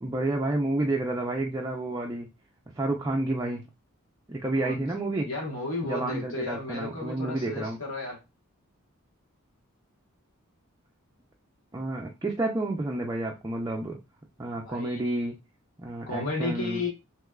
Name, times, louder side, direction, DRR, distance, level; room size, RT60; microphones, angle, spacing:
voice 1, 0.0-2.3 2.8-3.7 4.3-5.3 5.8-7.8 11.7-14.0 14.4-15.4 15.8-16.8, right 2 dB, 15° right, 0.4 m, -30 dB
voice 2, 4.6-8.2 14.5-15.2 16.1-16.9, left 3 dB, 65° left, 1.3 m, -34 dB
3.3 x 3.0 x 2.3 m
head